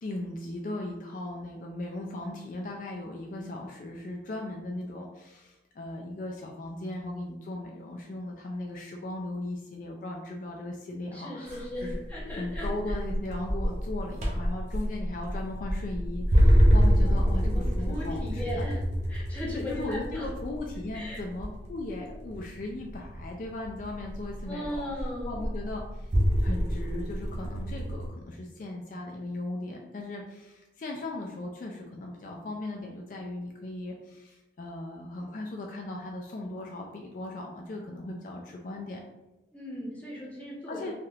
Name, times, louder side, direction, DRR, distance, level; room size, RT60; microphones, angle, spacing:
voice 1, 0.0-12.0 12.4-18.7 19.5-39.0 40.7-40.9, left 2 dB, 45° left, 0 dB, 0.3 m, -38 dB
voice 2, 11.1-13.0 17.0-17.1 17.5-18.8 19.1-20.3 20.9-21.2 24.5-25.4 39.5-40.9, left 1 dB, 10° left, -5 dB, 0.7 m, -37 dB
sound 1, 11.5-28.1, equal, 40° right, 0.6 m, -27 dB
3.3 x 2.7 x 2.4 m, 1.0 s
head